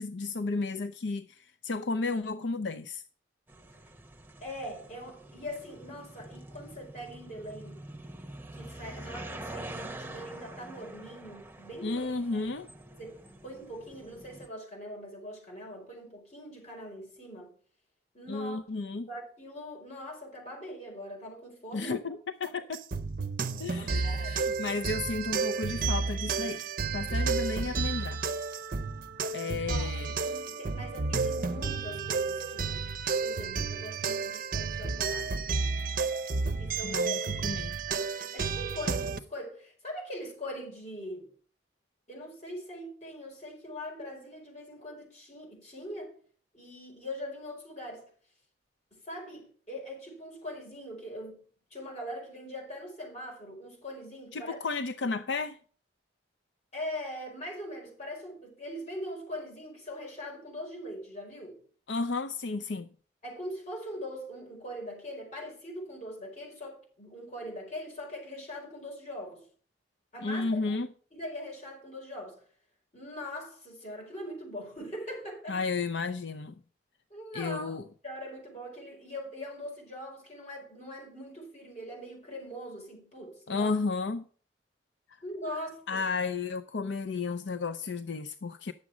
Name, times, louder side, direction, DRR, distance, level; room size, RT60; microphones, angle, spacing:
voice 1, 0.0-3.0 11.8-12.7 18.3-19.1 21.7-22.8 23.6-26.6 26.9-28.2 29.3-30.1 36.8-37.8 54.3-55.6 61.9-62.9 70.2-70.9 75.5-76.5 77.3-77.9 83.5-84.3 85.9-88.7, left 3 dB, 75° left, 0.5 m, -33 dB
sound 1, 3.5-14.5, right 1 dB, 10° right, 0.9 m, -46 dB
voice 2, 4.4-7.8 8.5-12.1 12.3-12.4 13.0-17.5 18.1-18.6 19.1-22.1 23.7-24.4 26.2-26.3 29.7-35.5 36.6-37.2 38.3-41.3 42.1-46.2 46.5-48.1 48.9-51.4 51.7-54.6 56.7-61.6 63.2-69.5 70.1-70.7 71.1-72.4 72.9-75.6 77.1-77.8 78.0-83.7 85.2-86.0, equal, 40° left, 5.0 m, -42 dB
sound 2, 22.7-39.2, right 4 dB, 45° right, 0.6 m, -31 dB
10.5 x 7.3 x 4.9 m
head